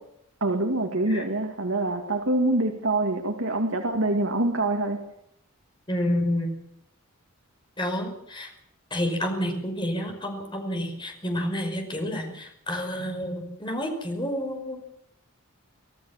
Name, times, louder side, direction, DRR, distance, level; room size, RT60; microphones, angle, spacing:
voice 1, 0.4-5.0, right 2 dB, 65° right, 3 dB, 2.4 m, -25 dB
voice 2, 5.9-6.5 7.8-8.5 8.9-14.8, equal, 20° left, 3 dB, 5.5 m, -29 dB
26.0 x 16.0 x 7.4 m, 0.76 s
head